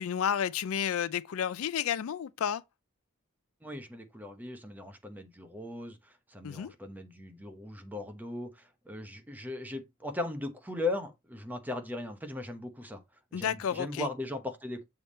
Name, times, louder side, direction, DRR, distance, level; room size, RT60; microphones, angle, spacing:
voice 1, 0.0-2.6 6.4-6.7 13.3-14.1, left 8 dB, 70° left, 0.4 m, -31 dB
voice 2, 3.6-13.0 13.3-14.9, left 2 dB, 10° right, 0.9 m, -38 dB
7.0 x 3.5 x 4.2 m
head